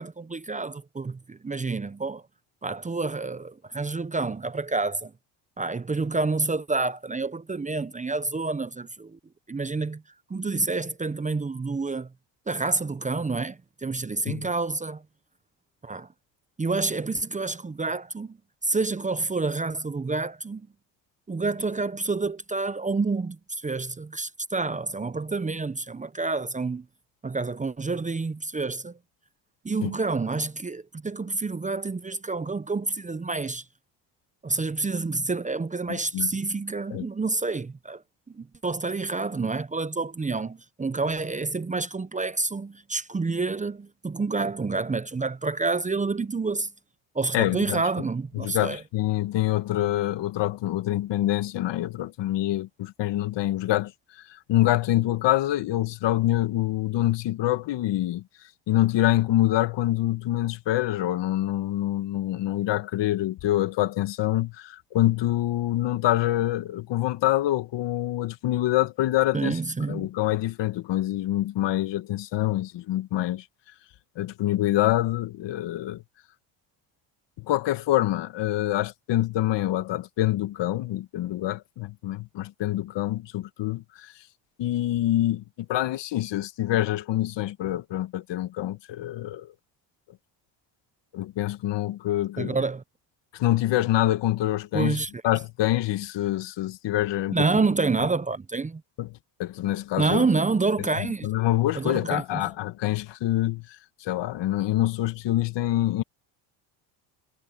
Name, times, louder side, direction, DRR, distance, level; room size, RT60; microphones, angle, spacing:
voice 1, 0.0-2.2 2.6-5.1 5.6-9.2 9.5-10.0 10.3-12.1 12.5-15.0 15.8-16.1 16.6-18.4 18.6-20.7 21.3-26.8 27.2-29.0 29.6-33.6 34.4-38.0 38.3-46.7 47.1-48.8 69.3-70.1 92.4-92.8 94.7-95.1 97.3-98.8 100.0-101.3 101.7-102.4, right 3 dB, 15° right, 0.9 m, -28 dB
voice 2, 35.9-36.3 36.9-37.1 47.3-47.8 48.3-58.2 58.7-69.6 69.9-73.4 74.2-76.0 77.4-84.1 84.6-89.5 91.1-92.6 93.3-97.5 99.0-100.3 101.0-106.0, left 14 dB, 60° left, 1.7 m, -26 dB
supercardioid pair, 90°, 47 cm